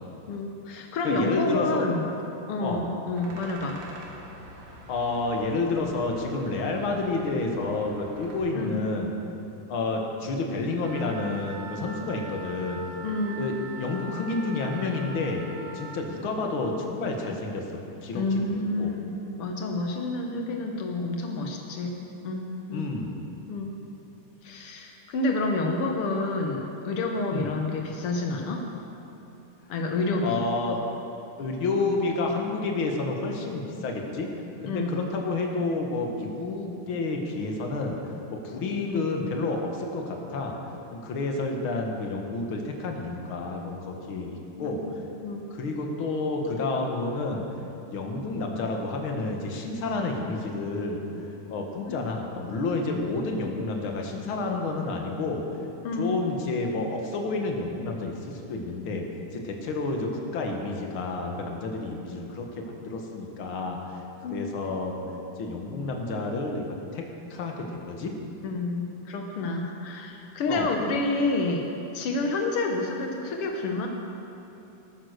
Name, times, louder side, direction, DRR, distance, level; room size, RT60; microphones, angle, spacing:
voice 1, 0.3-2.1 2.5-3.8 8.5-8.9 13.0-13.5 18.1-22.9 23.5-23.8 24.4-28.7 29.7-30.4 34.7-35.0 38.9-39.3 44.6-44.8 45.2-45.5 51.9-52.0 55.8-56.1 64.2-64.5 68.4-73.9, left 2 dB, 85° left, 2 dB, 1.2 m, -29 dB
voice 2, 1.0-1.8 2.6-2.9 4.7-9.1 9.7-12.8 13.3-15.4 15.7-17.6 18.0-18.9 22.7-23.1 27.3-27.5 30.2-30.8 31.4-34.3 34.6-40.5 40.9-44.8 45.5-47.4 47.9-55.4 56.0-59.1 59.3-63.8 64.3-65.0 65.4-68.1 70.5-70.7, left 3 dB, 55° left, 1 dB, 1.5 m, -30 dB
sound 1, 3.1-8.4, right 1 dB, 80° right, 3.6 m, -46 dB
Wind instrument woodwind instrument, 10.8-16.0, right 2 dB, 60° right, 1.8 m, -42 dB
19.0 x 9.1 x 6.6 m, 2.9 s
omnidirectional pair, 4.1 m